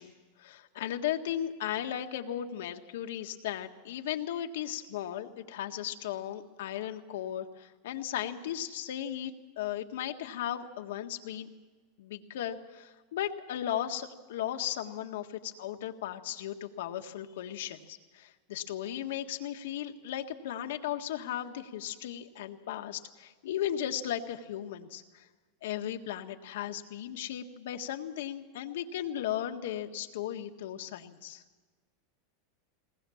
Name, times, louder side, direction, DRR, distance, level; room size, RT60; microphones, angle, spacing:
voice 1, 0.0-11.5 12.0-25.3 25.6-31.4, left 11 dB, 80° left, 5 dB, 1.6 m, -36 dB
21.5 x 19.0 x 7.2 m, 1.4 s
supercardioid pair, 160°, 0 cm